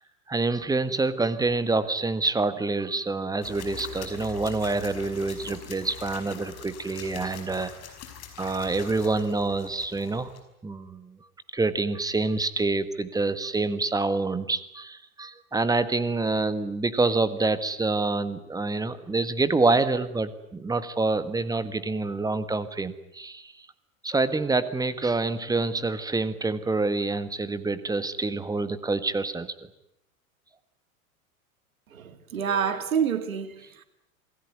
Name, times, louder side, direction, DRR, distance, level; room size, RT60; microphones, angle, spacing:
voice 1, 0.3-7.7 8.4-10.3 10.6-11.2 11.5-23.5 24.0-29.7, right 3 dB, 10° right, 1.6 m, -27 dB
sound 1, 3.4-10.4, left 9 dB, 35° left, 5.4 m, -43 dB
voice 2, 31.9-33.8, right 7 dB, 65° right, 2.3 m, -28 dB
27.5 x 19.5 x 9.5 m
figure-of-eight pair, 90°, 43 cm